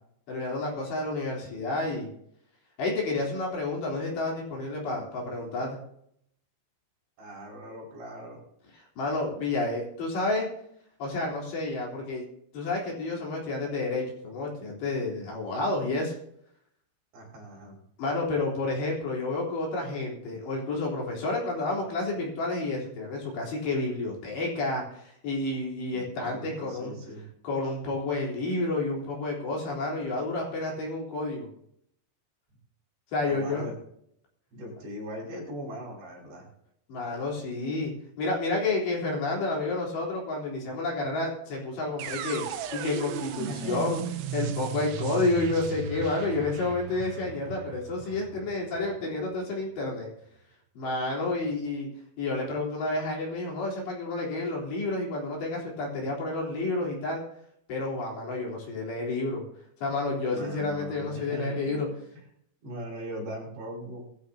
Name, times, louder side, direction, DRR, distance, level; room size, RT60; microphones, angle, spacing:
voice 1, 0.3-2.1 2.8-5.8 9.0-10.5 11.0-12.2 12.5-16.1 18.0-26.9 27.4-31.5 33.1-33.6 36.9-42.4 42.7-44.0 44.3-50.1 50.8-51.9 52.2-57.2 57.7-59.4 59.8-61.9, left 2 dB, 60° left, -2 dB, 5.7 m, -30 dB
voice 2, 7.2-8.4 17.1-17.8 25.9-27.2 33.2-33.7 34.5-36.5 43.5-44.1 60.3-61.9 62.6-64.0, equal, 55° right, -3 dB, 7.6 m, -40 dB
sound 1, 42.0-49.9, right 8 dB, 80° right, 3.5 m, -37 dB
20.5 x 14.5 x 2.8 m, 0.71 s
omnidirectional pair, 5.9 m